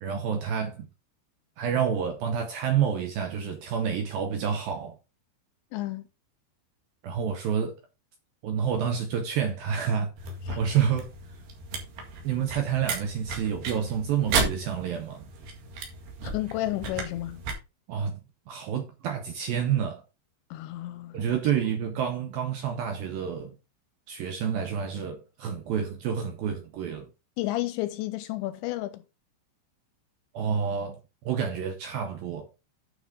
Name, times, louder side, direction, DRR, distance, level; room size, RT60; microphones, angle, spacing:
voice 1, 0.0-0.9 1.6-5.0 7.0-7.7 8.4-10.1 10.6-11.1 12.2-15.3 17.9-20.0 21.1-23.6 24.1-27.1 30.3-32.5, right 8 dB, 90° right, 2.0 m, -29 dB
voice 2, 5.7-6.0 10.5-10.6 16.2-17.4 20.5-21.2 27.4-29.0, left 16 dB, 80° left, 2.7 m, -31 dB
sound 1, 10.2-17.5, right 4 dB, 60° right, 3.5 m, -34 dB
9.3 x 6.5 x 3.7 m
omnidirectional pair, 5.5 m